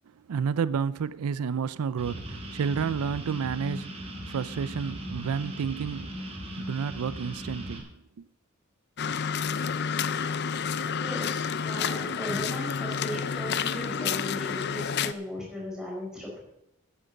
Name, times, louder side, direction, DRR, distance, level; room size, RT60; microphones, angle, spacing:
voice 1, 0.1-8.3, right 6 dB, 90° right, 0.4 m, -31 dB
sound 1, 2.0-7.8, equal, 30° right, 2.4 m, -38 dB
sound 2, 9.0-15.1, left 6 dB, 50° left, 0.5 m, -29 dB
voice 2, 10.9-16.4, left 1 dB, 5° right, 4.7 m, -37 dB
10.0 x 9.1 x 7.0 m
head